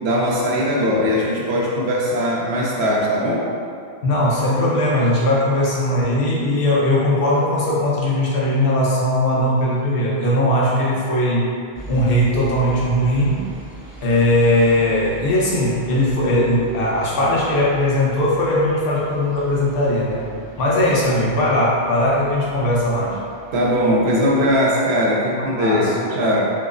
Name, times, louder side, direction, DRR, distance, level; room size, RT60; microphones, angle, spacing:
voice 1, 0.0-3.5 23.5-26.5, equal, 85° right, -4 dB, 0.9 m, -20 dB
voice 2, 4.0-11.5 11.9-13.4 14.0-20.3 20.6-23.2 25.3-26.3, left 1 dB, 60° left, -5 dB, 0.9 m, -19 dB
sound 1, 11.7-24.6, right 3 dB, 40° right, 0.7 m, -39 dB
5.7 x 2.0 x 2.5 m, 2.4 s
omnidirectional pair, 1.1 m